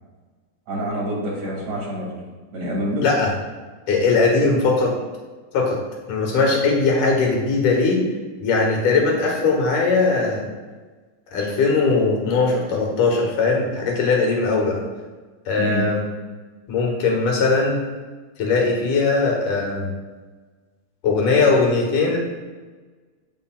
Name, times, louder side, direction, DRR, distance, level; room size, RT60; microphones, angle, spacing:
voice 1, 0.7-2.2 2.5-3.1 15.6-15.9, equal, 50° right, -4 dB, 3.4 m, -26 dB
voice 2, 3.0-3.3 3.9-5.0 5.5-5.8 6.1-8.0 8.4-10.5 11.3-14.8 15.5-16.0 16.7-17.8 18.4-19.9 21.0-22.2, left 3 dB, 70° left, -1 dB, 3.0 m, -19 dB
16.0 x 5.6 x 2.3 m, 1.3 s
omnidirectional pair, 3.8 m